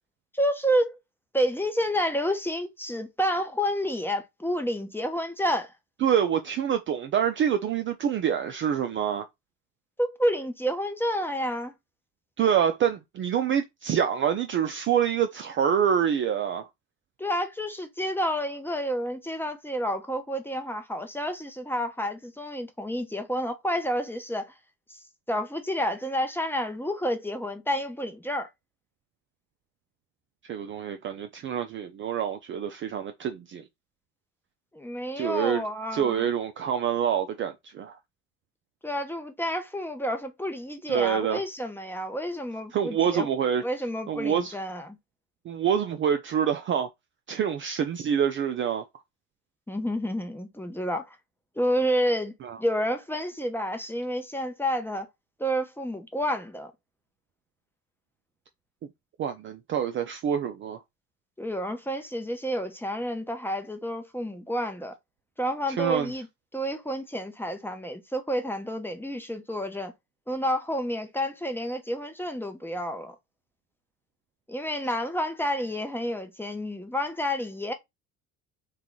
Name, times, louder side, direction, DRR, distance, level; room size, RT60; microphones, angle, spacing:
voice 1, 0.3-1.0 1.3-5.7 10.0-11.7 17.2-24.5 24.9-25.0 25.3-28.5 34.7-36.3 38.8-43.3 43.6-45.0 49.7-51.2 51.6-52.3 52.6-55.1 55.4-56.7 61.4-64.9 65.4-66.3 66.5-69.9 70.3-73.2 74.5-77.7, equal, 5° left, 0.6 m, -29 dB
voice 2, 6.0-9.3 12.4-16.7 30.5-33.6 35.2-35.6 35.9-38.0 40.9-41.4 42.7-43.6 44.1-44.6 45.5-46.9 47.3-48.8 52.4-52.6 59.2-60.8 65.7-66.1, right 8 dB, 30° right, 0.4 m, -26 dB
2.9 x 2.3 x 3.9 m
hypercardioid pair, 65°, 42 cm